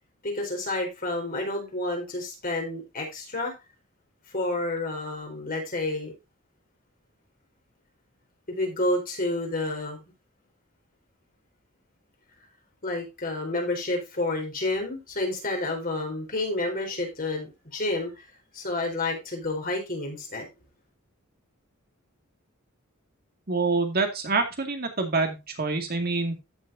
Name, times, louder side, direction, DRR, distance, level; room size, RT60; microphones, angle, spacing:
voice 1, 0.2-3.5 4.3-6.1 8.5-10.0 12.8-18.2 18.5-20.4, left 2 dB, 40° left, 1 dB, 4.1 m, -29 dB
voice 2, 23.5-26.4, right 3 dB, 45° right, 5 dB, 2.2 m, -26 dB
14.5 x 6.5 x 2.7 m, 0.24 s
head